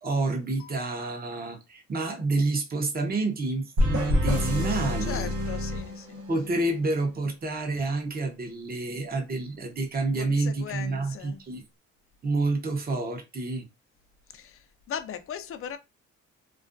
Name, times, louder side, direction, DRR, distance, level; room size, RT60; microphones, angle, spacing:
voice 1, 0.0-5.3 6.3-11.6 12.2-13.6, right 3 dB, 30° right, 0.7 m, -28 dB
sound 1, 3.8-6.6, left 1 dB, 70° right, 1.0 m, -27 dB
voice 2, 5.0-6.3 10.2-11.4 14.3-15.8, left 8 dB, 45° left, 0.5 m, -38 dB
2.4 x 2.1 x 2.5 m
cardioid pair, 90°, 30 cm